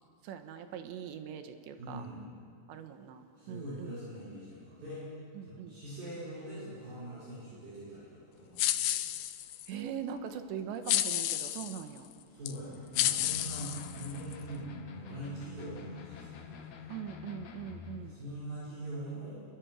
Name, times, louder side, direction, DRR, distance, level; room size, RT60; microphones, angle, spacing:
voice 1, 0.2-2.1 2.7-3.9 5.3-5.8 9.7-12.1 16.9-18.2, right 8 dB, 80° right, 7 dB, 3.4 m, -41 dB
voice 2, 1.8-2.2 3.4-5.0 5.4-8.9 12.3-17.0 18.0-19.5, right 1 dB, 55° right, -9 dB, 7.4 m, -43 dB
sound 1, 8.6-9.7 10.9-11.8 12.5-12.6 13.0-14.3, left 13 dB, 85° left, 2.0 m, -31 dB
sound 2, 12.9-18.0, left 5 dB, 55° left, 2.5 m, -47 dB
27.0 x 23.0 x 6.4 m, 2.3 s
omnidirectional pair, 5.1 m